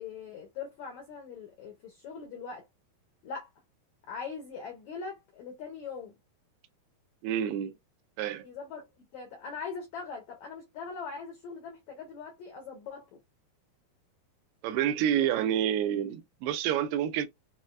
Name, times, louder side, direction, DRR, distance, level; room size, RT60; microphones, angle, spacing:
voice 1, 0.0-2.7 3.2-3.5 4.1-6.1 8.4-13.2, left 5 dB, 85° left, 1.6 m, -41 dB
voice 2, 7.2-7.7 8.2-8.5 14.6-17.3, right 10 dB, 85° right, 2.6 m, -28 dB
6.4 x 2.2 x 2.5 m
omnidirectional pair, 4.6 m